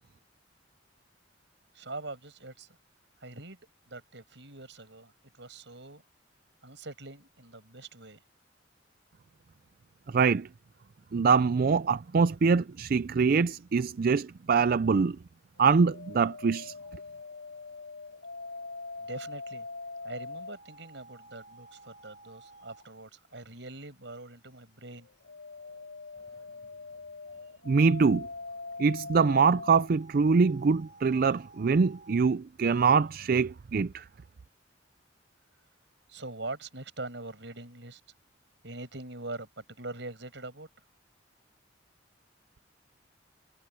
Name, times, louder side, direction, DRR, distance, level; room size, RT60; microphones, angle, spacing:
voice 1, 1.7-2.7 3.2-3.6 3.9-6.0 6.6-8.2 19.0-19.7 20.0-25.1 36.1-38.0 38.6-40.7, right 2 dB, 70° right, 7.5 m, -43 dB
voice 2, 10.1-10.5 11.1-15.2 15.6-16.7 27.7-28.3 28.8-34.0, right 5 dB, 50° right, 0.4 m, -24 dB
sound 1, 15.6-22.9 24.9-32.2, left 3 dB, 90° left, 3.8 m, -44 dB
head